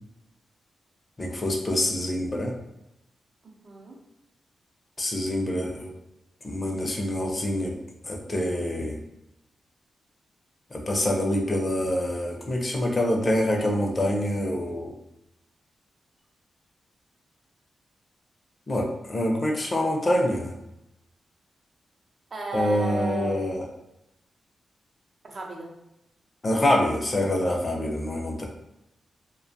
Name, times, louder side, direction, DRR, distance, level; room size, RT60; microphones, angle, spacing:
voice 1, 1.2-2.5 5.0-5.9 6.4-7.7 8.0-9.0 10.7-14.9 18.7-20.5 22.5-23.6 26.4-28.5, left 1 dB, 40° left, 1 dB, 0.5 m, -26 dB
voice 2, 3.4-4.0 22.3-23.5 25.2-25.7, right 2 dB, 55° right, -1 dB, 0.6 m, -34 dB
2.4 x 2.2 x 2.6 m, 0.89 s
cardioid pair, 55°, 0 cm